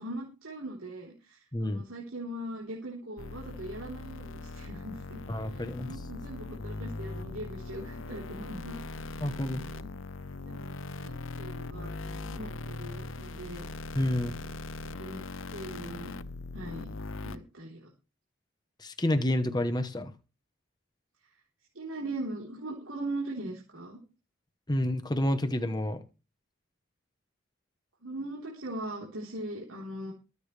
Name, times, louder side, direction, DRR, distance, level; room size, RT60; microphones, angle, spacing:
voice 1, 0.0-9.9 10.4-13.7 14.2-14.5 14.9-15.2 15.5-16.1 16.5-16.9 17.2-17.9 21.7-24.0 28.0-30.1, right 1 dB, 70° right, -3 dB, 3.8 m, -40 dB
voice 2, 1.5-1.8 5.3-5.9 9.2-9.6 13.9-14.3 18.8-20.1 24.7-26.0, left 1 dB, 20° left, 8 dB, 1.0 m, -29 dB
sound 1, 3.2-17.4, left 3 dB, 65° left, 0.8 m, -40 dB
23.5 x 8.2 x 3.3 m, 0.32 s
head